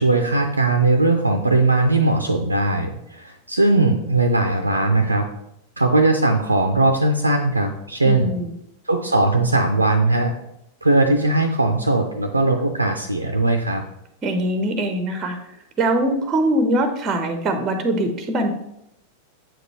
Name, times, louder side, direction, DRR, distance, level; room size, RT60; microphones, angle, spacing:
voice 1, 0.0-5.2 5.8-8.3 8.9-10.3 10.8-13.8, right 2 dB, 80° right, 5 dB, 0.5 m, -19 dB
voice 2, 8.0-8.5 14.2-15.4 15.8-18.5, right 1 dB, 25° right, 7 dB, 0.8 m, -22 dB
7.5 x 5.1 x 3.1 m, 0.81 s
figure-of-eight pair, 90°, 0 cm